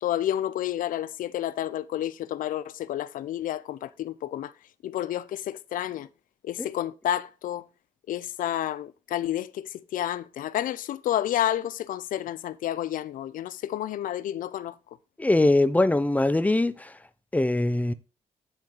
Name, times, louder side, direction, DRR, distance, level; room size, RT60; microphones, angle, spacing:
voice 1, 0.0-4.5 4.8-6.1 6.4-7.7 8.1-14.7, left 12 dB, 90° left, 0.5 m, -30 dB
voice 2, 15.2-16.9 17.3-17.9, left 2 dB, 10° left, 0.7 m, -22 dB
10.5 x 3.9 x 4.6 m
cardioid pair, 90°, 14 cm